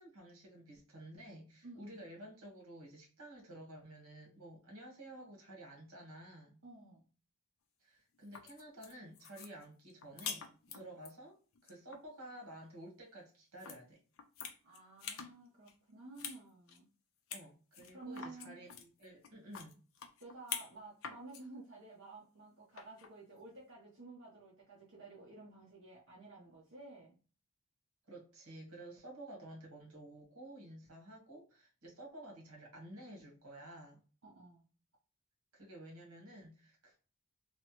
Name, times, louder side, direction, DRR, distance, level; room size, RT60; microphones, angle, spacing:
voice 1, 0.0-6.6 7.8-11.4 11.6-14.0 17.3-19.8 28.1-34.0 35.5-37.0, right 1 dB, 85° right, 1.3 m, -52 dB
voice 2, 1.6-2.0 6.6-7.0 10.7-10.9 14.6-16.9 17.9-18.6 20.2-27.1 34.2-34.7, right 2 dB, 65° right, 0.8 m, -53 dB
sound 1, 8.1-11.1 11.5-12.0 13.6-13.8 14.2-15.3 15.7-16.4 16.7-16.8 17.3-17.5 17.7-20.7 21.0-21.4 22.7-23.1, left 7 dB, 70° left, 0.5 m, -45 dB
3.3 x 2.0 x 2.9 m
head